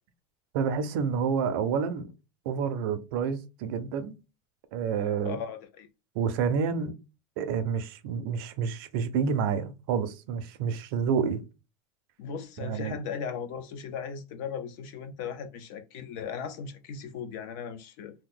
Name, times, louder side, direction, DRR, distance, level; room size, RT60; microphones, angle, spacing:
voice 1, 0.5-2.1 2.5-4.2 4.7-5.4 6.2-7.0 7.4-11.4 12.6-13.0, right 6 dB, 55° right, 0.5 m, -29 dB
voice 2, 5.2-5.9 12.2-18.1, left 6 dB, 50° left, 0.5 m, -37 dB
2.8 x 2.1 x 3.6 m
supercardioid pair, 180°, 14 cm